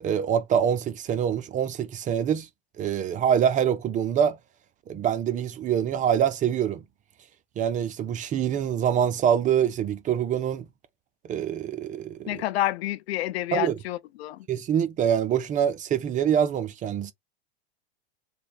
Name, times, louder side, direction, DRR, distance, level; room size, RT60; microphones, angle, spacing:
voice 1, 0.0-2.5 2.8-4.4 4.9-6.8 7.6-10.7 11.3-12.4 13.5-13.7 14.5-17.1, right 9 dB, 25° right, 0.4 m, -25 dB
voice 2, 12.3-14.5, left 14 dB, 75° left, 0.5 m, -29 dB
3.4 x 2.1 x 4.1 m
hypercardioid pair, 105°, 32 cm